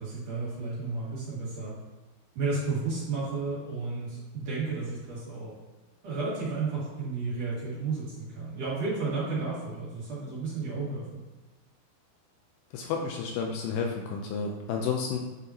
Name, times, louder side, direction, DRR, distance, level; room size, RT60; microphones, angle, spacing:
voice 1, 0.0-1.7 2.3-5.5 6.0-11.0, right 4 dB, 50° right, -8 dB, 3.2 m, -32 dB
voice 2, 12.7-15.2, left 5 dB, 80° left, 1 dB, 2.5 m, -31 dB
9.8 x 5.4 x 2.9 m, 1.2 s
omnidirectional pair, 5.0 m